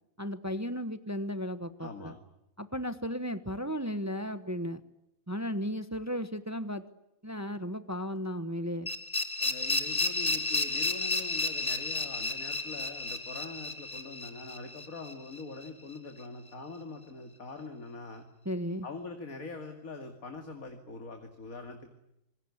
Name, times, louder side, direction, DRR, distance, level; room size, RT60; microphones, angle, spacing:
voice 1, 0.2-2.1 2.6-4.8 5.3-6.8 7.2-8.9 18.4-18.9, equal, 15° right, 11 dB, 1.1 m, -35 dB
voice 2, 1.8-2.2 9.4-18.2 18.8-21.9, left 3 dB, 90° left, 5 dB, 2.8 m, -43 dB
sound 1, 8.9-15.7, left 2 dB, 25° left, 2.2 m, -32 dB
26.5 x 21.5 x 9.8 m, 0.84 s
omnidirectional pair, 1.4 m